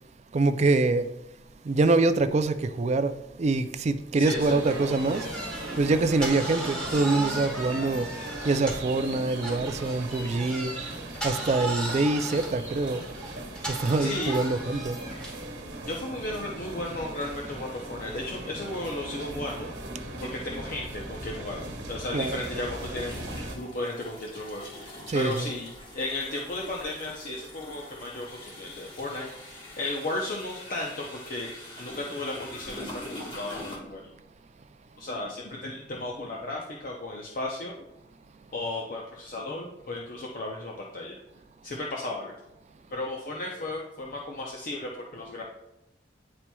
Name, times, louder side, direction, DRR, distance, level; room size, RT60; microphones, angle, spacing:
voice 1, 0.3-1.1 1.6-3.1 3.4-5.3 5.8-8.1 8.4-10.7 11.2-13.1 13.7-15.0 22.1-22.4 25.1-25.5, right 3 dB, 35° right, 0.3 m, -25 dB
voice 2, 4.2-4.5 14.0-14.4 15.9-19.7 20.2-23.2 23.5-34.1 35.0-37.8 38.5-41.2 41.6-42.4 42.9-45.4, left 2 dB, 50° left, 0.6 m, -35 dB
sound 1, 4.2-9.0 9.4-15.5, right 2 dB, 5° left, 1.2 m, -37 dB
sound 2, 4.4-23.6, right 2 dB, 80° right, 1.4 m, -38 dB
sound 3, 20.8-20.9 22.2-33.8, left 1 dB, 30° left, 1.4 m, -44 dB
9.5 x 4.3 x 2.3 m
head